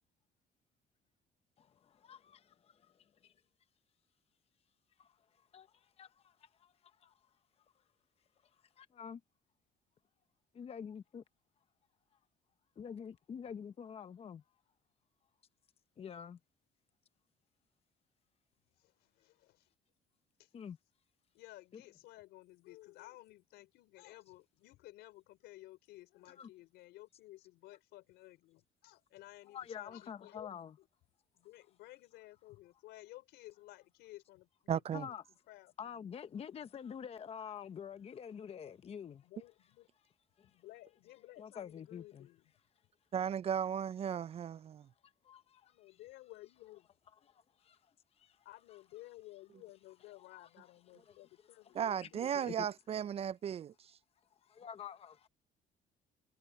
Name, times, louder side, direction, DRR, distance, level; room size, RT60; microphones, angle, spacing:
voice 1, 1.6-3.3 5.0-5.2 5.5-7.1 8.8-9.2 10.5-11.2 12.8-14.4 16.0-16.4 20.5-20.8 21.7-21.8 26.4-26.5 29.5-30.7 34.9-35.2 35.8-39.3 40.4-40.5 41.4-42.3 45.2-46.0 48.7-48.8 50.2-50.5 51.0-51.2 51.6-51.7 52.0-52.7 54.4-55.3, left 7 dB, 35° left, 0.8 m, -47 dB
voice 2, 18.8-19.7 20.4-20.5 21.3-30.5 30.8-30.9 31.3-35.1 35.5-35.7 39.2-39.9 40.5-42.5 45.7-46.8 48.4-52.8, left 17 dB, 90° left, 4.8 m, -55 dB
voice 3, 34.7-35.1 43.1-44.9 51.7-53.7, right 8 dB, 35° right, 0.4 m, -35 dB
cardioid pair, 110°, 17 cm